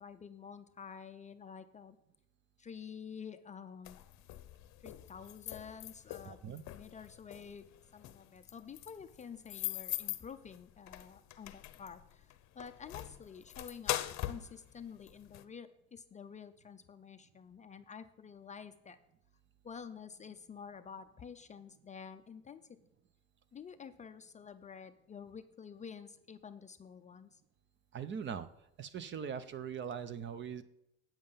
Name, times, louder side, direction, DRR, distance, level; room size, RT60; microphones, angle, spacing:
voice 1, 0.0-2.0 2.6-4.0 4.8-6.4 6.7-7.6 7.9-14.0 14.2-19.0 19.6-22.6 23.5-27.4, left 6 dB, 25° left, 9 dB, 0.4 m, -49 dB
sound 1, 3.8-15.4, left 15 dB, 60° left, 0.7 m, -43 dB
voice 2, 6.2-6.6 27.9-28.5 28.8-30.6, right 7 dB, 35° right, 14 dB, 0.6 m, -41 dB
8.7 x 7.3 x 5.6 m, 0.84 s
cardioid pair, 125°, 31 cm